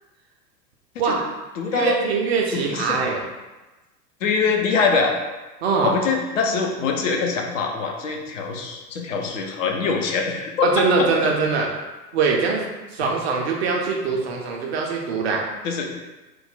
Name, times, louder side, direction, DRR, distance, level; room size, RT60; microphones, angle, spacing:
voice 1, 1.0-1.3 1.7-3.2 5.6-5.9 10.6-11.7 12.1-12.6 12.9-15.4, right 4 dB, 45° right, 0 dB, 0.5 m, -22 dB
voice 2, 1.6-2.0 2.5-3.0 4.2-5.2 5.8-10.7 11.0-11.1 15.6-15.9, left 5 dB, 50° left, 2 dB, 0.6 m, -23 dB
3.0 x 2.1 x 3.6 m, 1.1 s
figure-of-eight pair, 95°, 49 cm